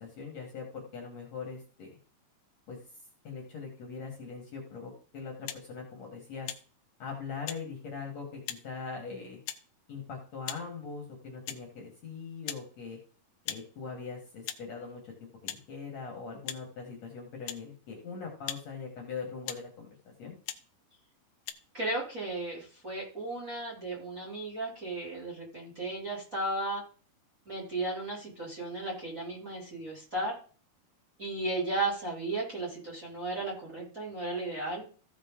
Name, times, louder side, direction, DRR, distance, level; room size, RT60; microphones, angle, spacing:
voice 1, 0.0-2.0 2.7-2.8 3.2-6.5 7.0-9.4 9.9-13.0 13.5-20.4, left 5 dB, 55° left, 0 dB, 2.3 m, -41 dB
sound 1, 5.4-5.6 6.4-6.6 7.5-7.6 8.5-8.6 9.5-9.6 10.4-10.6 11.4-11.6 12.4-12.7 13.4-13.6 14.4-14.6 15.5-15.6 16.4-16.6 17.5-17.6 18.4-18.6 19.4-19.7 20.4-20.6 21.4-21.5, left 12 dB, 75° left, 2.0 m, -38 dB
voice 2, 21.7-26.8 27.5-30.3 31.2-34.8, right 2 dB, 25° right, -3 dB, 2.6 m, -35 dB
15.5 x 5.2 x 3.7 m, 0.41 s
omnidirectional pair, 4.4 m